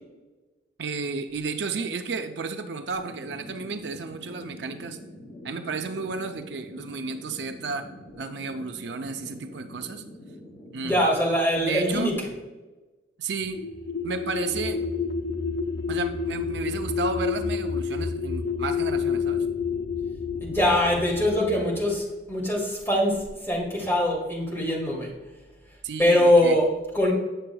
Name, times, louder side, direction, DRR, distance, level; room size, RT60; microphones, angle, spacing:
voice 1, 0.8-5.0 5.4-7.9 8.2-10.0 10.7-11.0 11.6-12.1 13.2-13.6 14.0-14.8 15.9-19.4 25.8-26.6, right 4 dB, 70° right, 7 dB, 0.5 m, -32 dB
sound 1, 3.0-10.7, equal, 60° left, 2.2 m, -45 dB
voice 2, 10.8-12.3 20.4-25.1 26.0-27.1, left 1 dB, 15° left, -4 dB, 2.3 m, -23 dB
sound 2, 13.4-21.7, left 5 dB, 85° left, 0.7 m, -29 dB
9.0 x 6.8 x 2.3 m, 1.2 s
head